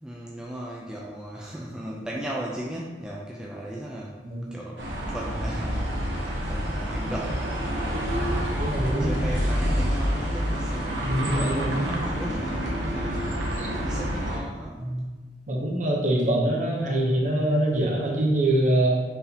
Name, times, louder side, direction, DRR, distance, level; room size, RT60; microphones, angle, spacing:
voice 1, 0.0-4.1 4.5-4.8 5.1-11.1 11.5-13.5 13.8-14.9, right 1 dB, 5° right, -4 dB, 0.3 m, -37 dB
sound 1, 4.8-14.4, equal, 80° right, 0.9 m, -28 dB
voice 2, 8.6-9.1 11.0-12.0 13.5-13.7 14.8-15.0 15.5-19.0, right 1 dB, 45° right, -1 dB, 0.8 m, -24 dB
4.5 x 3.4 x 2.8 m, 1.2 s
head